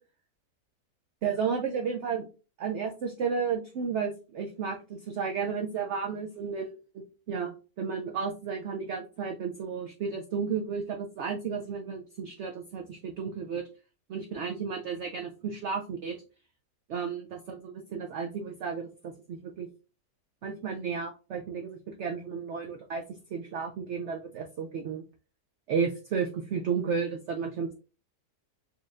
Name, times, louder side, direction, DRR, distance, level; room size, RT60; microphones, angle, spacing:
voice 1, 1.2-2.3 2.6-13.6 14.1-16.2 16.9-19.7 20.4-25.0 25.7-27.7, right 6 dB, 75° right, 3 dB, 0.6 m, -33 dB
4.3 x 3.0 x 2.4 m, 0.33 s
omnidirectional pair, 1.7 m